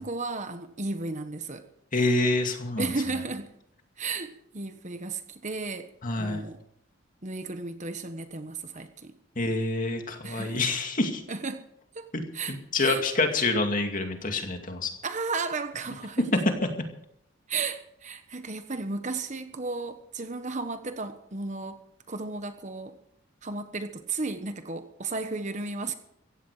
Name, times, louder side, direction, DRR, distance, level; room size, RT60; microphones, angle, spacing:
voice 1, 0.0-1.6 2.8-3.5 4.0-5.9 6.2-6.6 7.2-9.1 10.2-10.6 11.3-11.6 11.9-12.1 12.3-13.0 15.0-16.4 17.5-21.8 22.1-23.0 23.4-25.9, right 3 dB, 35° right, 9 dB, 1.2 m, -34 dB
voice 2, 1.9-2.9 6.0-6.4 9.4-11.2 12.1-14.9 16.3-16.4, left 2 dB, 40° left, 4 dB, 2.3 m, -27 dB
16.5 x 15.5 x 4.9 m, 0.73 s
head